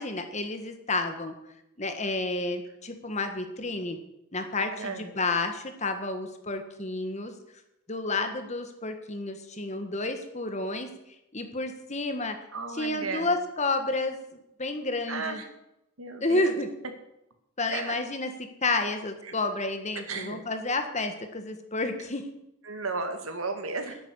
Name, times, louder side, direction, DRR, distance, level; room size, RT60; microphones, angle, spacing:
voice 1, 0.0-1.3 1.8-4.0 4.3-7.3 7.9-10.9 11.3-12.4 12.7-15.4 16.2-16.7 17.6-18.3 18.6-22.3, left 2 dB, 35° left, 7 dB, 1.6 m, -30 dB
voice 2, 4.8-5.1 12.5-13.3 15.1-15.4 16.0-16.5 17.7-18.0 20.1-20.4 22.7-24.0, right 3 dB, 85° right, 6 dB, 2.2 m, -34 dB
11.5 x 8.8 x 9.9 m, 0.85 s
head